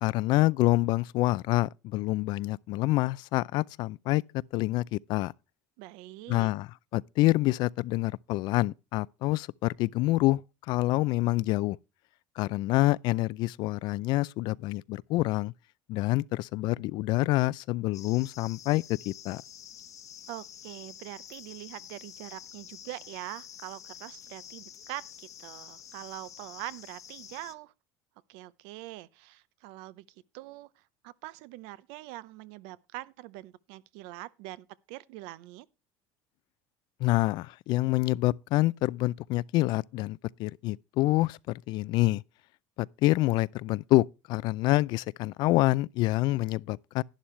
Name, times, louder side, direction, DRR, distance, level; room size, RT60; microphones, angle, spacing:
voice 1, 0.0-4.2 4.5-5.3 6.3-10.4 10.7-11.8 12.4-15.5 15.9-19.4 37.0-42.2 42.8-47.0, left 19 dB, 65° left, 0.4 m, -27 dB
voice 2, 5.8-6.5 20.3-27.7 28.3-30.1 30.3-30.7 31.0-35.7, right 17 dB, 75° right, 0.7 m, -43 dB
sound 1, 17.9-27.6, left 9 dB, 40° left, 1.0 m, -48 dB
11.5 x 10.0 x 3.2 m
supercardioid pair, 115°, 8 cm